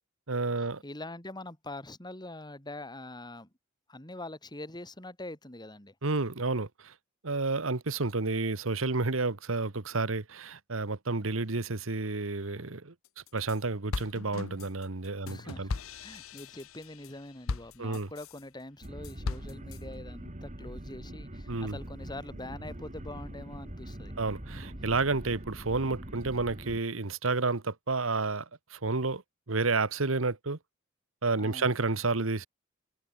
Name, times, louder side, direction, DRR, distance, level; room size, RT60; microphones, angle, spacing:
voice 1, 0.3-0.8 6.0-6.9 7.2-12.9 13.3-15.7 17.8-18.1 21.5-21.8 24.2-29.2 29.5-30.6 31.2-32.5, right 3 dB, 75° right, 1.4 m, -30 dB
voice 2, 0.8-3.5 3.9-5.9 15.3-15.7 16.0-24.1 31.3-31.7, left 2 dB, 20° left, 4.9 m, -44 dB
sound 1, 13.1-13.6 13.9-18.4 18.8-19.8, left 3 dB, 85° left, 0.8 m, -38 dB
sound 2, 18.8-26.8, right 1 dB, 35° right, 2.6 m, -43 dB
head